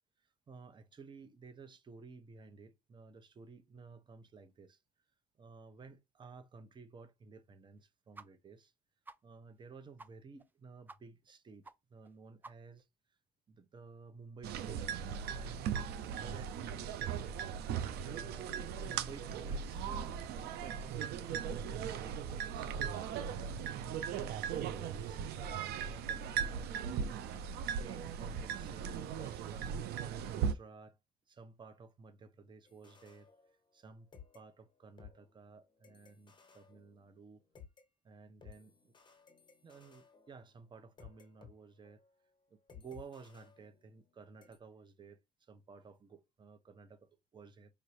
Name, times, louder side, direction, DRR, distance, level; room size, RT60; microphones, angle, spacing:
voice 1, 0.5-4.8 5.4-8.7 9.2-12.8 13.5-14.9 15.3-15.7 15.9-17.3 17.8-18.5 18.8-27.2 27.6-29.8 30.3-31.0 31.3-33.3 33.7-37.4 38.0-38.9 39.6-42.0 42.5-45.2 45.5-47.7, right 4 dB, 30° right, 0.8 m, -54 dB
sound 1, 8.1-8.3 8.6-8.7 9.0-9.2 9.6-9.7 10.0-10.1 10.4-10.5 10.9-11.0 11.3-11.4 11.6-11.7 12.0-12.1 12.4-12.8, right 3 dB, 10° right, 0.3 m, -52 dB
sound 2, 14.4-30.5, right 7 dB, 75° right, 0.6 m, -38 dB
sound 3, 32.6-33.9 34.1-37.8 38.4-41.5 41.8-42.1 42.7-44.1 44.4-44.6, left 7 dB, 25° left, 1.4 m, -59 dB
5.1 x 2.7 x 3.2 m
cardioid pair, 115°, 17 cm